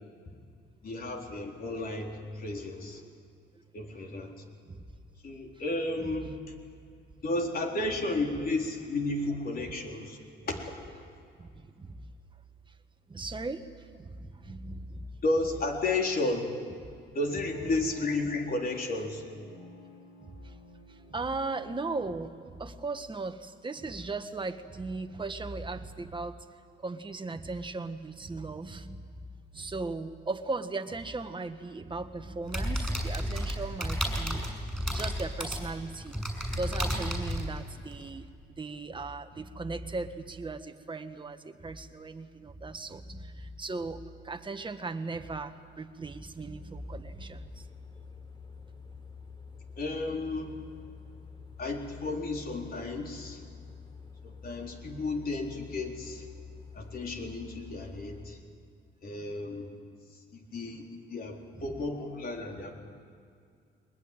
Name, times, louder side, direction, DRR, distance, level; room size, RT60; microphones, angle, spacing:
voice 1, 0.8-3.0 3.7-4.3 5.2-6.4 7.2-10.2 10.5-11.0 15.2-16.5 17.1-19.2 49.8-50.6 51.6-53.4 54.2-56.3 56.7-58.4 59.0-59.7 60.3-62.7, left 2 dB, 50° left, 1 dB, 4.0 m, -33 dB
voice 2, 6.0-6.3 9.5-9.6 11.4-12.1 13.1-15.1 20.2-20.6 20.9-26.4 26.8-29.1 29.5-34.5 34.9-36.2 36.6-38.3 38.6-47.7 61.5-61.6, right 3 dB, 25° right, 8 dB, 1.5 m, -38 dB
sound 1, 17.4-22.8, left 2 dB, 65° left, 4.1 m, -55 dB
sound 2, 32.5-38.1, equal, ahead, 6.2 m, -32 dB
sound 3, 46.5-58.3, left 5 dB, 25° left, 3.4 m, -48 dB
22.0 x 20.5 x 9.1 m, 2.3 s
cardioid pair, 90°, 20 cm